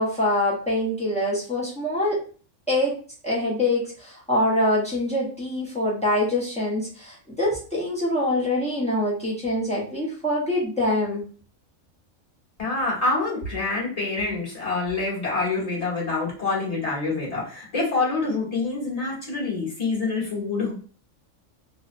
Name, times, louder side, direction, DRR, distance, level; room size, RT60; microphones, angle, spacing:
voice 1, 0.0-2.2 2.7-3.0 3.2-11.2, left 1 dB, 10° left, -5 dB, 0.5 m, -24 dB
voice 2, 12.6-20.7, left 3 dB, 30° left, -5 dB, 1.1 m, -26 dB
2.6 x 2.1 x 2.5 m, 0.41 s
omnidirectional pair, 1.4 m